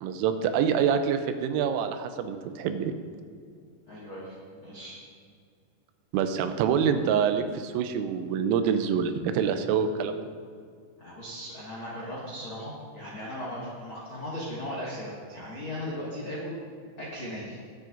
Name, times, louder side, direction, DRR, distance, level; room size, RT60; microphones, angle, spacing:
voice 1, 0.0-2.9 6.1-10.3, right 7 dB, 90° right, 8 dB, 3.3 m, -26 dB
voice 2, 3.9-5.0 11.0-16.5 17.0-17.6, left 1 dB, 60° left, -8 dB, 1.3 m, -37 dB
21.0 x 7.6 x 2.6 m, 2.2 s
omnidirectional pair, 5.7 m